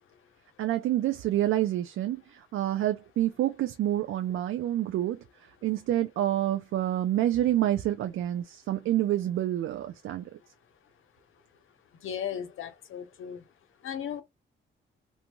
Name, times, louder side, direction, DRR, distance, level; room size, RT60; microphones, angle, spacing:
voice 1, 0.6-5.2 5.6-10.3, right 13 dB, 85° right, 0.4 m, -28 dB
voice 2, 12.0-13.4 13.8-14.2, left 9 dB, 80° left, 0.7 m, -36 dB
2.6 x 2.2 x 2.9 m
cardioid pair, 115°, 21 cm